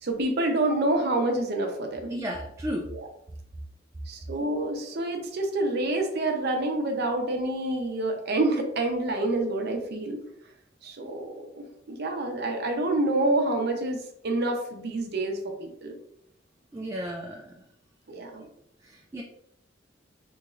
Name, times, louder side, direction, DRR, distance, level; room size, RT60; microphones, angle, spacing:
voice 1, 0.0-2.1 2.9-3.0 4.1-10.2 10.8-16.0 18.1-18.4, right 2 dB, 60° right, 3 dB, 0.7 m, -27 dB
voice 2, 2.1-2.9 16.7-17.5 18.8-19.2, equal, 15° right, 0 dB, 0.3 m, -34 dB
3.5 x 3.1 x 2.4 m, 0.73 s
head